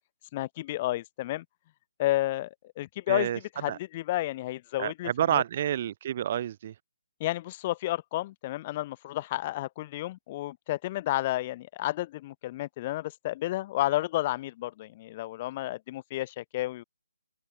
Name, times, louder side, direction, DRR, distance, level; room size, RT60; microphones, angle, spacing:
voice 1, 0.3-1.4 2.0-3.3 3.6-5.4 7.2-16.8, left 16 dB, 30° left, 2.1 m, -31 dB
voice 2, 3.1-3.4 3.7-3.8 4.8-6.7, right 10 dB, 35° right, 1.0 m, -29 dB
open air
figure-of-eight pair, 155°, 0 cm